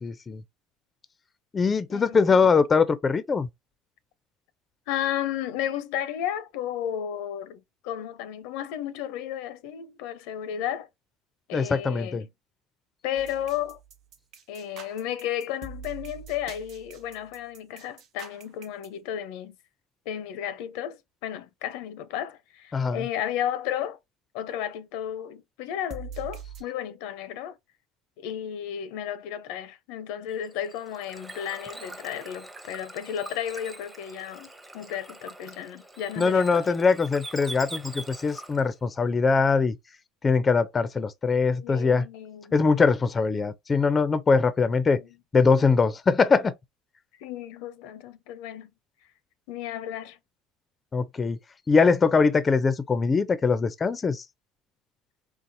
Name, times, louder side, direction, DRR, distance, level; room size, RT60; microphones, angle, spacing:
voice 1, 0.0-0.4 1.5-3.5 11.5-12.2 22.7-23.0 36.2-39.8 40.2-42.0 42.5-45.0 45.3-46.5 50.9-51.4 51.7-54.2, left 4 dB, 25° left, 0.4 m, -22 dB
voice 2, 1.9-2.5 4.9-10.9 11.5-12.3 13.0-13.8 14.5-19.6 20.1-24.0 24.3-27.6 28.2-34.5 34.7-36.8 41.4-42.6 45.0-45.2 47.2-48.7 49.5-50.2, left 10 dB, 80° left, 0.6 m, -33 dB
sound 1, 13.2-18.9 25.9-26.6, right 6 dB, 60° right, 0.9 m, -43 dB
Bird / Water, 30.3-38.7, right 2 dB, 10° right, 0.7 m, -43 dB
4.0 x 2.4 x 2.7 m
supercardioid pair, 110°, 0 cm